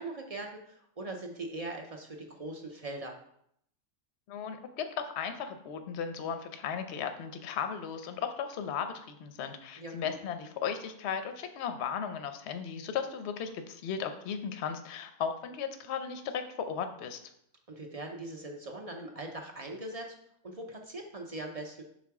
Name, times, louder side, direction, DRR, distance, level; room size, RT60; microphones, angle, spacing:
voice 1, 0.0-3.1 9.8-10.1 17.7-20.1 20.4-21.8, right 2 dB, 60° right, 2 dB, 0.3 m, -41 dB
voice 2, 4.3-17.2, left 7 dB, 60° left, 8 dB, 0.8 m, -36 dB
6.0 x 4.2 x 4.7 m, 0.71 s
omnidirectional pair, 1.6 m